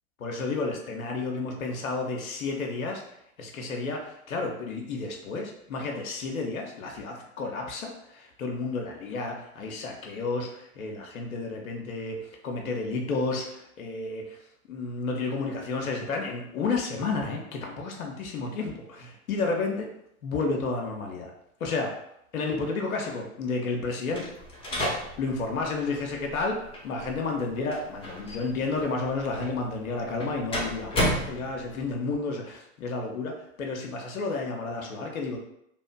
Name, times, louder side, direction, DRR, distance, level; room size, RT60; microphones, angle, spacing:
voice 1, 0.2-3.0 3.4-14.4 14.7-19.9 20.2-21.3 21.6-21.9 22.3-24.3 25.2-26.6 26.8-35.4, left 3 dB, 85° left, 1 dB, 0.6 m, -31 dB
sound 1, 24.1-31.9, equal, 15° left, 0.7 m, -34 dB
2.7 x 2.4 x 2.2 m, 0.77 s
hypercardioid pair, 95°, 41 cm